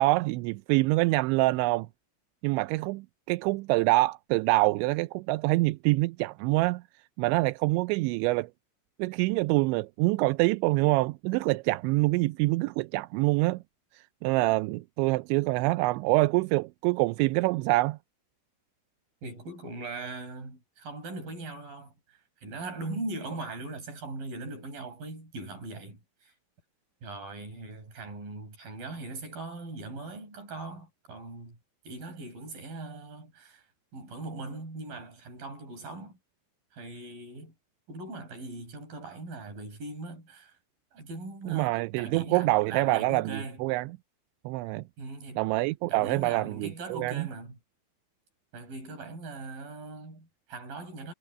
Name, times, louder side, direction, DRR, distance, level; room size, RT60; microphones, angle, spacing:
voice 1, 0.0-1.9 2.4-6.8 7.2-8.5 9.0-13.6 14.2-18.0 41.5-43.9 44.5-44.8 45.4-47.3, right 21 dB, 80° right, 2.7 m, -26 dB
voice 2, 19.2-26.3 27.0-31.6 31.8-36.2 36.7-37.5 37.9-40.6 40.9-43.6 45.0-45.4 45.8-47.6 48.5-51.1, right 2 dB, 45° right, 8.4 m, -40 dB
omnidirectional pair, 5.6 m